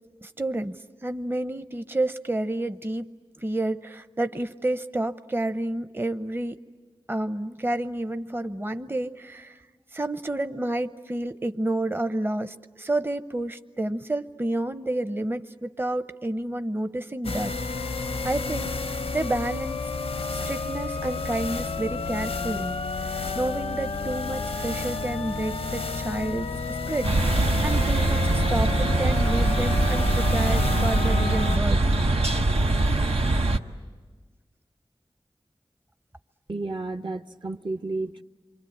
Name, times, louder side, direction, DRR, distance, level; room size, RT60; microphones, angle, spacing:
voice 1, 0.2-3.1 3.4-6.6 7.1-9.6 9.9-17.5 18.2-19.9 20.3-27.1 27.4-31.8, right 1 dB, 20° right, 10 dB, 0.7 m, -30 dB
sound 1, 17.2-31.6, left 4 dB, 85° left, 0.7 m, -31 dB
sound 2, 27.0-33.6, right 2 dB, 85° right, 0.9 m, -22 dB
voice 2, 36.5-38.2, right 2 dB, 50° right, 7 dB, 0.8 m, -32 dB
28.5 x 24.0 x 8.5 m, 1.4 s
cardioid pair, 40°, 10 cm